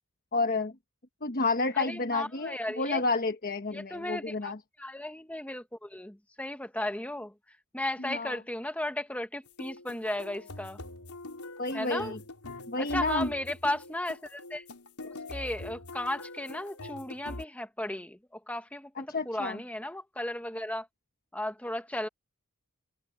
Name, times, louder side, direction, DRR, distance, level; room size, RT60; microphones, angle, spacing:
voice 1, 0.3-0.7 1.2-4.6 8.0-8.4 11.6-12.2 12.7-13.3 19.0-19.6, left 3 dB, 40° left, 1.2 m, -30 dB
voice 2, 1.7-3.0 3.7-4.5 4.8-7.3 7.7-10.8 11.7-12.1 12.8-14.6 15.3-20.9 21.3-22.1, left 1 dB, 5° left, 1.2 m, -35 dB
sound 1, 9.5-17.4, left 2 dB, 85° left, 4.1 m, -43 dB
head